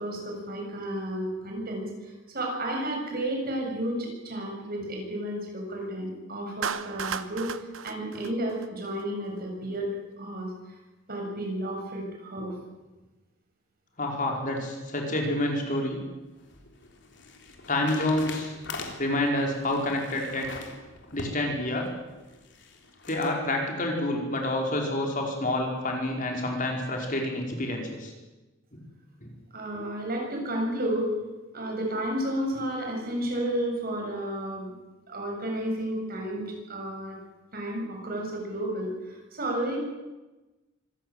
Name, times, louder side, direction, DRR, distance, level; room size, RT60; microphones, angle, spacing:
voice 1, 0.0-9.9 10.2-10.8 11.1-12.6 29.5-31.1 31.5-34.7 35.1-37.2 37.5-39.8, right 1 dB, 50° right, 1 dB, 7.2 m, -32 dB
Clapping, 6.6-9.0, right 6 dB, 85° right, 1.2 m, -34 dB
voice 2, 14.0-16.0 17.7-18.5 19.0-20.5 21.1-21.9 23.1-28.1 29.2-29.3, left 1 dB, 40° left, 1 dB, 5.0 m, -28 dB
sound 1, 16.0-23.3, left 3 dB, 60° left, 3.5 m, -43 dB
25.0 x 15.0 x 9.2 m, 1.1 s
head